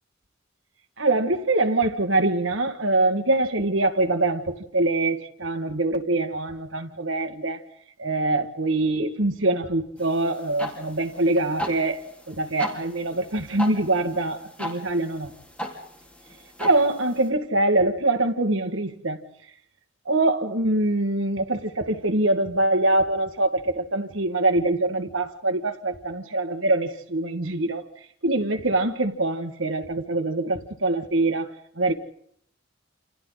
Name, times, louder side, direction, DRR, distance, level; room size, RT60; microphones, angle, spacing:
voice 1, 1.0-7.6 8.0-15.3 16.6-19.2 20.1-27.8 28.2-31.9, right 2 dB, 80° right, 2.1 m, -24 dB
sound 1, 10.0-17.3, equal, 5° left, 4.4 m, -38 dB
29.0 x 28.5 x 4.2 m
head